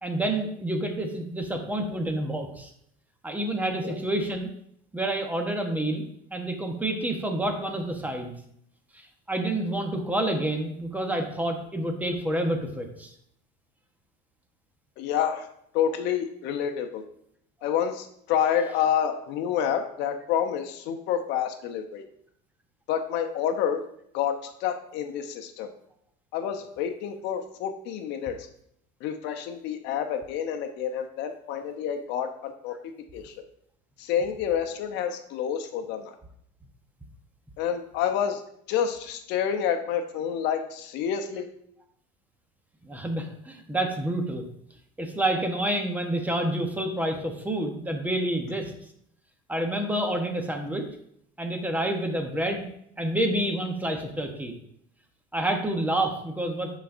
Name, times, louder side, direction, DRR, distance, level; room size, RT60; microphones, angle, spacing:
voice 1, 0.0-2.7 3.2-4.5 4.9-6.1 6.3-8.3 8.9-13.1 42.8-44.5 45.0-48.7 49.5-50.9 51.4-52.7 53.0-54.5 55.3-56.7, right 1 dB, 10° right, 4 dB, 0.9 m, -28 dB
voice 2, 15.0-15.5 15.7-17.0 17.6-22.0 22.9-23.8 24.1-25.7 26.3-28.4 29.0-32.7 33.1-33.3 34.0-36.1 37.6-38.4 38.7-41.5, left 8 dB, 70° left, 6 dB, 0.7 m, -28 dB
10.0 x 4.0 x 2.6 m, 0.71 s
supercardioid pair, 115°, 19 cm